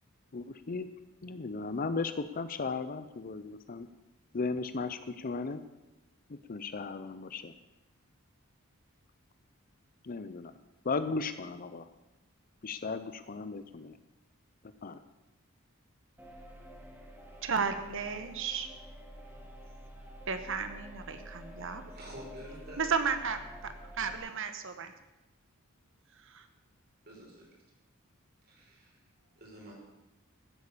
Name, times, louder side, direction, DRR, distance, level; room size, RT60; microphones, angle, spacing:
voice 1, 0.3-0.9 1.2-3.9 4.3-5.6 6.3-7.5 10.0-10.5 10.8-11.9 12.6-14.0 14.8-15.0, left 4 dB, 40° left, 12 dB, 0.6 m, -36 dB
sound 1, 16.2-24.2, equal, 10° right, 2.0 m, -49 dB
voice 2, 17.4-18.7 20.3-21.8 22.8-24.9 26.2-26.5, right 5 dB, 65° right, 9 dB, 1.3 m, -34 dB
voice 3, 21.9-22.8 27.0-27.5 28.4-29.0 29.3-29.7, equal, 50° right, -3 dB, 5.2 m, -49 dB
15.0 x 8.6 x 6.9 m, 1.0 s
head